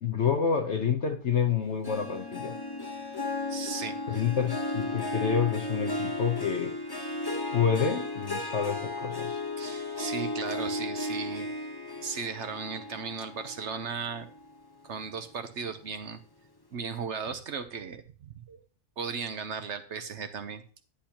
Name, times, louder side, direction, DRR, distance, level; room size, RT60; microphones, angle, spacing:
voice 1, 0.0-2.6 4.1-6.7 7.5-9.4, left 7 dB, 55° left, 6 dB, 1.0 m, -28 dB
Harp, 1.8-14.6 15.0-15.4 15.9-16.0, left 2 dB, 20° left, 0.9 m, -35 dB
voice 2, 3.5-4.2 9.6-11.5 12.0-14.3 14.8-16.2 16.7-18.6 19.0-20.6, right 5 dB, 55° right, 9 dB, 1.0 m, -36 dB
10.0 x 10.0 x 2.9 m, 0.39 s
omnidirectional pair, 1.6 m